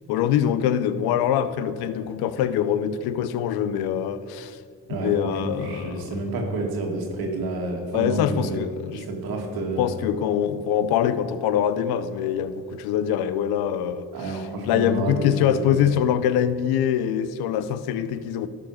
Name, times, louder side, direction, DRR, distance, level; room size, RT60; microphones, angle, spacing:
voice 1, 0.1-4.6 4.9-6.1 7.9-9.0 9.8-14.4 14.7-18.5, left 9 dB, 90° left, 0.6 m, -24 dB
voice 2, 5.4-9.9 14.1-15.7, right 2 dB, 80° right, 1.9 m, -29 dB
12.5 x 5.0 x 6.3 m
supercardioid pair, 60°, 36 cm